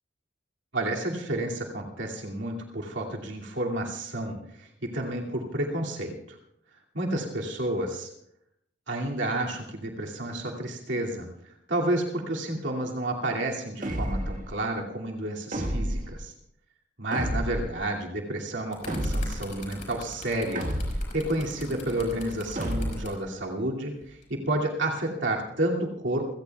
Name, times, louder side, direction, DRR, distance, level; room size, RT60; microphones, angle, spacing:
voice 1, 0.7-6.4 6.9-8.1 8.9-16.3 17.0-20.7 21.1-26.3, right 1 dB, 70° right, -1 dB, 2.6 m, -30 dB
sound 1, 13.8-14.5 15.5-16.2 17.1-17.8 18.9-19.5 20.6-21.2 22.6-23.2, equal, 45° right, 1.8 m, -30 dB
sound 2, 18.4-23.1 24.0-24.2, left 2 dB, 40° left, 5.3 m, -42 dB
28.0 x 17.0 x 2.4 m, 0.77 s
head